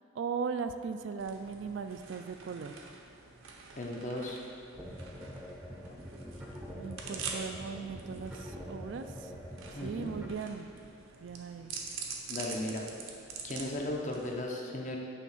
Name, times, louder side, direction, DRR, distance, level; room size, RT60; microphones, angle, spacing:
voice 1, 0.1-2.7 6.7-9.3 9.8-10.7 11.2-11.7, right 5 dB, 60° right, 9 dB, 0.3 m, -38 dB
sound 1, 1.2-14.4, right 5 dB, 85° right, 0.8 m, -46 dB
voice 2, 3.8-4.4 9.7-10.2 12.3-12.8 13.4-15.0, left 1 dB, 35° left, 0 dB, 0.8 m, -36 dB
sound 2, 4.8-10.3, equal, 5° right, 0.6 m, -45 dB
8.4 x 3.5 x 5.6 m, 2.3 s
head